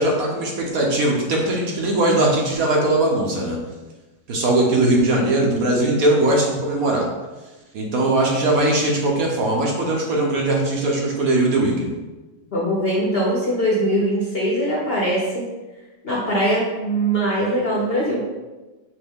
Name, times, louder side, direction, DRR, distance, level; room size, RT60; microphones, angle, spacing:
voice 1, 0.0-3.6 4.3-7.1 7.7-11.9, right 2 dB, 65° right, -1 dB, 1.1 m, -20 dB
voice 2, 12.5-15.4 16.0-18.2, right 1 dB, 45° left, -5 dB, 0.8 m, -21 dB
5.3 x 2.6 x 3.5 m, 1.2 s
omnidirectional pair, 1.8 m